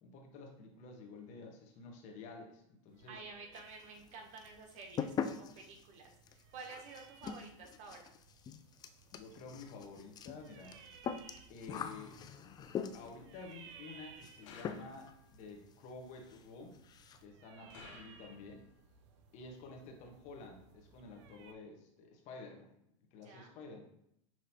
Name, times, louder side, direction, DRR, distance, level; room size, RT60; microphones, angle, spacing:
voice 1, 0.0-3.2 9.1-10.8 11.5-12.2 12.9-16.8 17.2-18.6 19.3-22.7 23.1-23.8, left 3 dB, 50° left, 2 dB, 1.2 m, -51 dB
sound 1, 2.9-21.5, right 6 dB, 70° right, 0.6 m, -61 dB
voice 2, 3.1-8.1 17.6-18.1 23.2-23.5, right 4 dB, 45° right, 2 dB, 1.0 m, -51 dB
sound 2, 3.5-4.1 4.4-13.3 14.2-14.4 14.6-15.1 15.4-15.5 15.9-16.0 16.2-16.4 16.7-17.2, left 7 dB, 25° left, 0.3 m, -43 dB
sound 3, 14.4-15.3 17.7-18.6, left 5 dB, 75° left, 0.8 m, -56 dB
6.0 x 3.0 x 2.8 m, 0.74 s
hypercardioid pair, 105°, 16 cm